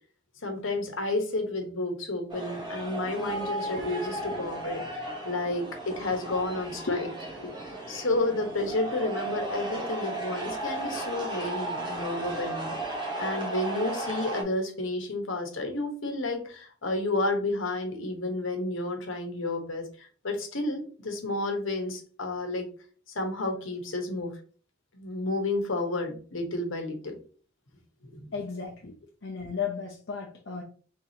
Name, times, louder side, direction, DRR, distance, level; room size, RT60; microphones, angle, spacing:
voice 1, 0.4-7.1 7.9-12.7 13.2-19.8 20.2-22.7 23.1-24.3 24.9-27.1 28.0-28.3, left 2 dB, 75° left, 1.2 m, -31 dB
sound 1, 2.3-14.4, right 2 dB, 20° right, 1.1 m, -35 dB
voice 2, 28.3-29.0 29.2-30.6, left 5 dB, 55° left, 0.7 m, -34 dB
4.8 x 3.6 x 2.8 m
head